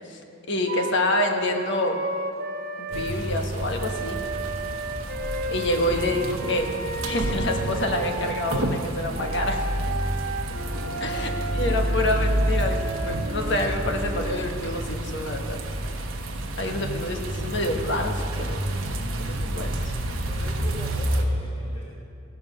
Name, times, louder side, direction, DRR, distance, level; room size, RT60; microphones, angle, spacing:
voice 1, 0.5-2.0 2.8-4.2 5.5-6.7 7.1-9.6 11.0-15.6 16.6-18.6 19.2-19.7, left 1 dB, 55° left, 3 dB, 1.2 m, -27 dB
Wind instrument woodwind instrument, 0.7-3.2 3.8-8.5 9.1-14.5, right 2 dB, 50° right, 1.3 m, -33 dB
sound 1, 2.9-21.2, right 1 dB, 75° right, 1.1 m, -29 dB
voice 2, 5.7-6.0 10.8-11.7 16.7-16.9 20.3-21.8, left 1 dB, 25° left, -7 dB, 1.7 m, -41 dB
16.0 x 6.3 x 6.5 m, 2.5 s
head